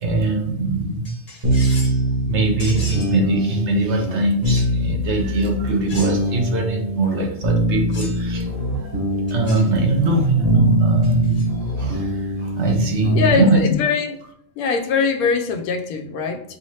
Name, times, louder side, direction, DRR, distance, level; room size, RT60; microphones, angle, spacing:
voice 1, 0.0-1.1 2.3-11.5 11.8-13.6, right 2 dB, 60° right, 2 dB, 1.0 m, -21 dB
sound 1, 1.0-2.0 2.6-3.2 4.4-4.7 5.9-6.4 7.9-8.3 9.3-9.7 11.0-11.5, left 2 dB, 35° left, 0.7 m, -37 dB
sound 2, 1.4-13.3, right 1 dB, 40° right, 1.5 m, -23 dB
voice 2, 13.1-14.1 14.6-16.6, left 5 dB, 85° left, 3 dB, 1.1 m, -22 dB
4.6 x 2.8 x 3.1 m, 0.73 s
omnidirectional pair, 1.5 m